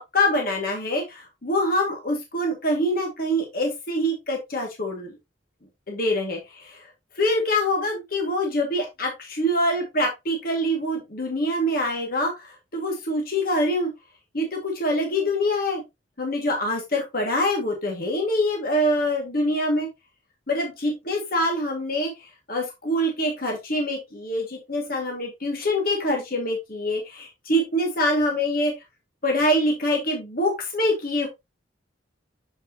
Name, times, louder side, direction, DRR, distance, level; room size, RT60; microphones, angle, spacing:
voice 1, 0.1-5.2 5.9-6.9 7.1-13.9 14.3-15.8 16.2-19.9 20.5-28.7 29.2-31.3, left 1 dB, 50° left, 1 dB, 2.0 m, -25 dB
7.7 x 5.5 x 2.8 m, 0.22 s
head